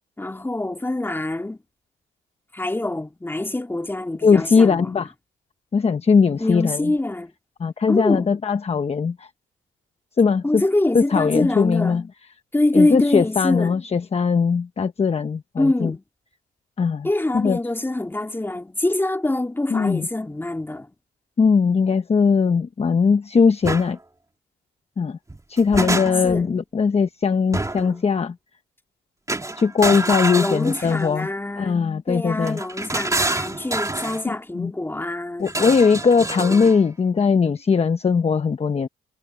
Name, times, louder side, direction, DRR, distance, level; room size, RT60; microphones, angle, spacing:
voice 1, 0.2-1.6 2.5-4.9 6.4-7.3 7.9-8.3 10.4-12.0 12.5-13.8 15.6-16.0 17.0-20.9 25.8-26.5 30.4-31.8 32.1-35.6, left 2 dB, 10° left, 2.3 m, -25 dB
voice 2, 4.2-5.1 5.7-6.9 7.6-9.3 10.2-10.6 10.9-12.0 12.7-15.9 16.8-17.1 17.3-17.6 19.7-20.1 21.4-24.0 25.0-25.2 25.5-28.4 29.6-31.3 31.6-32.6 34.3-34.7 35.4-38.9, left 5 dB, 30° left, 1.0 m, -19 dB
sound 1, 23.6-23.9 25.3-26.4 27.5-28.0 29.3-31.1 32.4-34.2 35.5-36.8, right 2 dB, 15° right, 3.1 m, -27 dB
cardioid pair, 90°, 20 cm